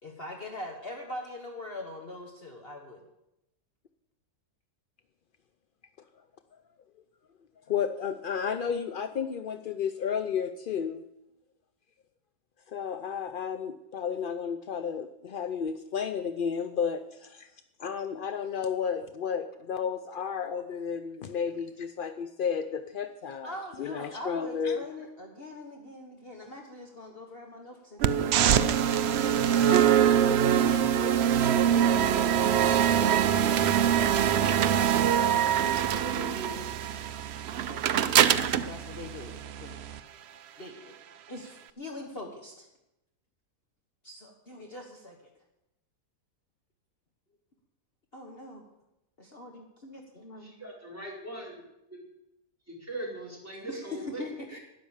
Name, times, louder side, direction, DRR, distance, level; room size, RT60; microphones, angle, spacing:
voice 1, 0.0-3.1 23.4-28.8 29.7-36.8 37.6-39.7 40.6-40.9 41.3-42.7 44.0-45.2 48.1-48.6 49.2-50.5 53.7-54.6, left 2 dB, 40° left, 1 dB, 1.6 m, -42 dB
voice 2, 7.7-11.0 12.7-17.5 17.8-24.8, left 7 dB, 65° left, 8 dB, 0.5 m, -32 dB
sound 1, 28.0-40.0, right 9 dB, 65° right, 0.7 m, -24 dB
voice 3, 50.4-51.6 51.9-52.0 52.7-54.2, right 1 dB, 10° right, -4 dB, 4.6 m, -40 dB
12.0 x 10.5 x 7.2 m, 0.88 s
omnidirectional pair, 1.6 m